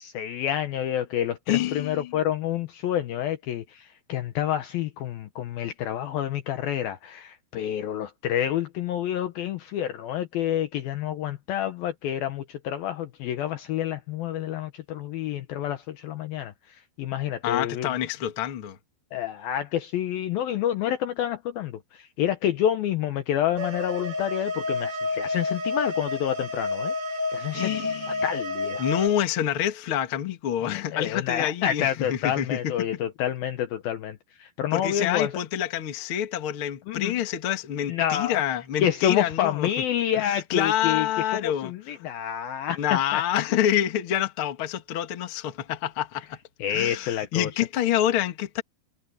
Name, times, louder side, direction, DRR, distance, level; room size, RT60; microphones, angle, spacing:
voice 1, 0.0-17.9 19.1-26.9 27.3-27.7 28.2-28.9 30.7-35.3 36.9-37.1 37.9-38.4 38.8-41.1 41.3-43.2 46.6-47.5, left 10 dB, 75° left, 2.4 m, -28 dB
voice 2, 1.5-2.1 17.4-18.8 27.5-28.2 28.8-32.9 34.7-39.7 40.2-41.7 42.8-46.4 46.7-48.6, left 11 dB, 50° left, 1.7 m, -27 dB
sound 1, 23.6-29.1, left 3 dB, 50° right, 6.0 m, -30 dB
omnidirectional pair, 5.1 m